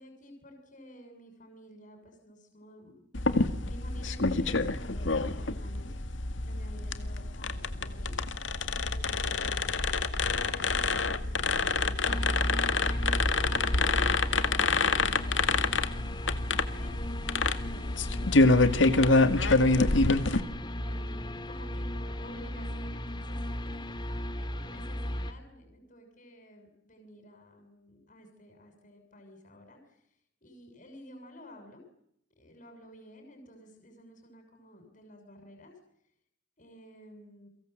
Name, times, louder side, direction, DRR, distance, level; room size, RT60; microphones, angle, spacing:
voice 1, 0.0-8.2 8.8-12.3 12.8-17.1 17.6-31.8 32.4-35.7 36.6-37.5, equal, 45° left, 3 dB, 6.7 m, -52 dB
sound 1, 3.1-20.4, left 3 dB, 85° left, 2.0 m, -27 dB
sound 2, 12.1-25.3, equal, 25° left, 2.2 m, -35 dB
30.0 x 24.0 x 7.9 m, 0.72 s
head